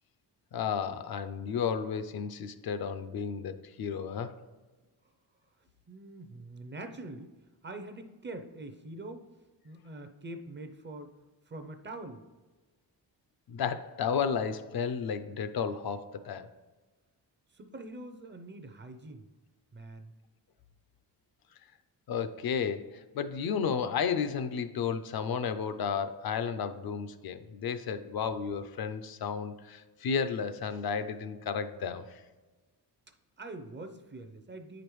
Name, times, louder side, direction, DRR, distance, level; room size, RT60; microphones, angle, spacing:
voice 1, 0.5-4.4 13.5-16.5 22.1-32.2, left 6 dB, 60° left, 11 dB, 0.5 m, -33 dB
voice 2, 5.9-7.3 7.6-9.3 9.6-11.1 11.5-12.2 17.5-19.2 19.7-20.1 33.4-34.8, right 2 dB, 30° right, 7 dB, 0.5 m, -44 dB
9.0 x 5.0 x 3.1 m, 1.3 s
wide cardioid pair, 120°, 41 cm